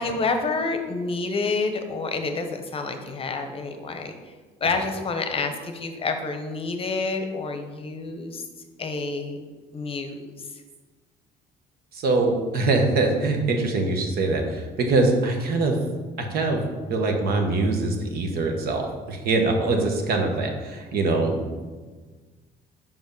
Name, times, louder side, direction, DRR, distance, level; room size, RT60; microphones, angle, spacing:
voice 1, 0.0-4.1 4.6-8.4 8.8-9.5 9.7-10.2, left 3 dB, 35° left, 6 dB, 0.8 m, -28 dB
voice 2, 11.9-15.8 16.2-16.6 16.9-21.6, right 3 dB, 65° right, 3 dB, 1.2 m, -23 dB
5.5 x 5.2 x 5.3 m, 1.4 s
cardioid pair, 110°, 17 cm